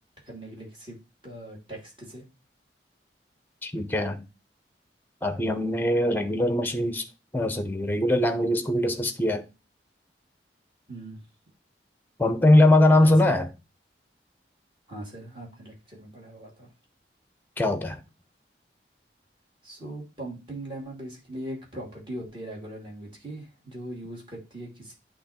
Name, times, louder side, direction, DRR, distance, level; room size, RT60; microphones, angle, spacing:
voice 1, 0.3-1.0 1.2-2.2 10.9-11.2 12.9-13.3 14.9-16.7 19.6-24.9, right 1 dB, 30° right, 2.5 m, -40 dB
voice 2, 3.6-4.3 5.2-7.0 7.3-9.4 12.2-13.5 17.6-18.0, left 1 dB, 10° left, 0.7 m, -21 dB
8.3 x 3.1 x 4.2 m
head